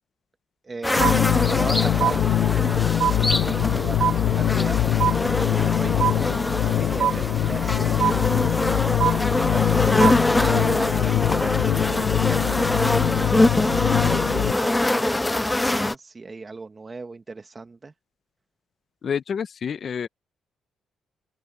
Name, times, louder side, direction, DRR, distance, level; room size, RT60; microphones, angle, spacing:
voice 1, 0.6-4.9 5.5-8.7 9.0-9.9 10.2-17.9, right 3 dB, 30° right, 1.5 m, -37 dB
sound 1, 0.8-15.9, left 2 dB, 10° left, 0.4 m, -24 dB
sound 2, 1.0-14.5, left 12 dB, 80° left, 1.0 m, -23 dB
sound 3, 1.0-1.7 2.0-2.7 3.0-3.7 4.0-4.7 5.0-5.7 6.0-6.7 7.0-7.7 8.0-8.7 9.0-9.7 10.0-10.7, right 10 dB, 75° right, 2.4 m, -25 dB
voice 2, 19.0-20.1, left 7 dB, 50° left, 1.0 m, -28 dB
cardioid pair, 90°, 0 cm